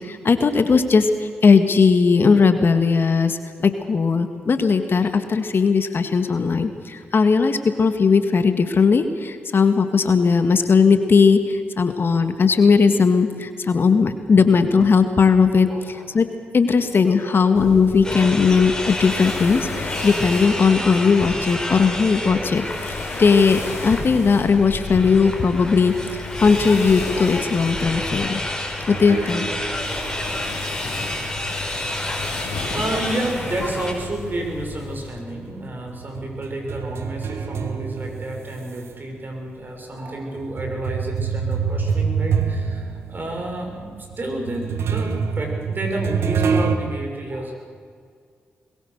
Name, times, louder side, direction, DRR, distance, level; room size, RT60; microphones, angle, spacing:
voice 1, 0.0-16.3 16.5-28.4 28.9-29.5, left 5 dB, 55° left, 8 dB, 1.8 m, -18 dB
voice 2, 15.7-16.0 17.2-17.4 32.7-47.5, right 1 dB, 45° right, 2 dB, 6.4 m, -30 dB
sound 1, 17.5-35.1, left 4 dB, 80° left, 3.5 m, -34 dB
sound 2, 18.0-33.9, left 1 dB, 15° left, 5.3 m, -30 dB
sound 3, 28.9-33.9 34.2-38.9 39.5-39.6 40.4-46.8, right 6 dB, 70° right, 1.6 m, -27 dB
22.0 x 20.5 x 6.7 m, 2.1 s
supercardioid pair, 40°, 4 cm